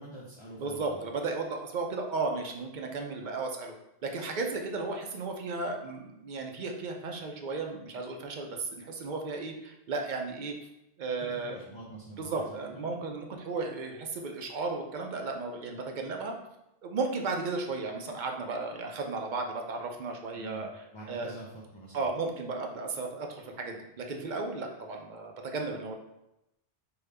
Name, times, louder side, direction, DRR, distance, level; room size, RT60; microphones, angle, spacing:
voice 1, 0.0-1.0 11.2-12.8 20.3-22.1, right 2 dB, 35° left, -4 dB, 0.5 m, -46 dB
voice 2, 0.6-3.7 4.0-10.5 11.0-11.6 12.2-16.4 16.8-21.3 21.9-25.9, right 3 dB, 55° right, 3 dB, 0.6 m, -34 dB
5.1 x 2.3 x 3.3 m, 0.90 s
omnidirectional pair, 1.2 m